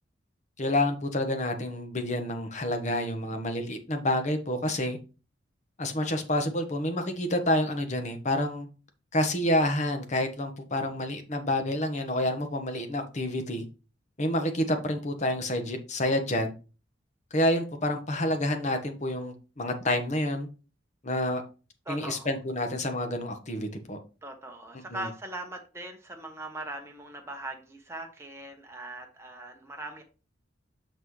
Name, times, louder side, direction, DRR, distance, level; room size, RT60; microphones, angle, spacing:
voice 1, 0.6-5.0 5.8-8.7 9.1-13.6 14.2-16.5 17.3-20.5 21.0-21.4 21.9-24.0 24.9-25.1, left 1 dB, 40° left, 6 dB, 1.3 m, -28 dB
voice 2, 21.9-22.3 24.2-30.0, right 2 dB, 15° right, 2 dB, 1.0 m, -40 dB
6.4 x 6.0 x 3.2 m, 0.33 s
head